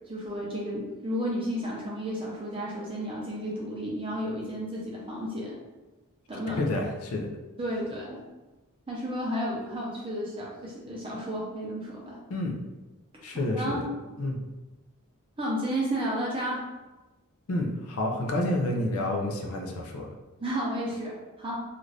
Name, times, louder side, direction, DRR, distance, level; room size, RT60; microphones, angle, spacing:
voice 1, 0.1-5.6 6.3-6.6 7.6-8.2 8.9-12.2 13.5-14.1 15.4-16.7 20.4-21.6, equal, 25° right, -4 dB, 0.5 m, -32 dB
voice 2, 6.6-7.3 12.3-12.6 13.2-13.8 14.2-14.4 17.5-20.1, left 1 dB, 65° left, 1 dB, 0.5 m, -29 dB
2.5 x 2.4 x 3.2 m, 1.1 s
head